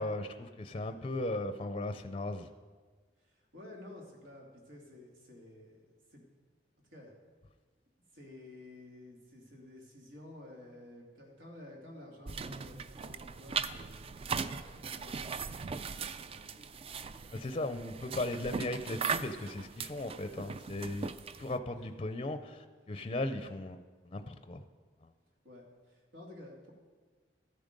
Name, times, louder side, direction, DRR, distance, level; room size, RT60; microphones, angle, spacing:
voice 1, 0.0-2.5 17.3-21.1 21.4-24.6, left 2 dB, 30° left, 9 dB, 0.5 m, -37 dB
voice 2, 3.2-6.2 6.9-7.1 8.1-14.0 14.4-16.0 16.2-16.6 21.7-21.9 25.4-26.7, left 1 dB, 85° right, 0 dB, 2.6 m, -52 dB
sound 1, 12.3-21.6, right 5 dB, 30° right, 0.3 m, -39 dB
13.5 x 9.0 x 5.2 m, 1.5 s
head